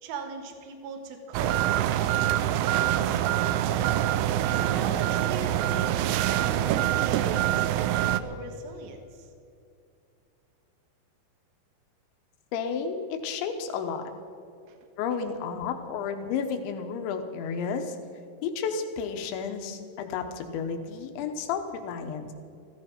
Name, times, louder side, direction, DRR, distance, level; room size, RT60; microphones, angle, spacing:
voice 1, 0.0-3.3 4.5-9.3 14.7-14.8, right 4 dB, 65° right, 5 dB, 2.8 m, -40 dB
sound 1, 1.3-8.2, right 12 dB, 85° right, 2.4 m, -25 dB
voice 2, 12.5-14.1 15.0-18.0 18.4-22.3, left 6 dB, 85° left, 6 dB, 3.4 m, -32 dB
15.0 x 15.0 x 5.3 m, 2.6 s
omnidirectional pair, 5.3 m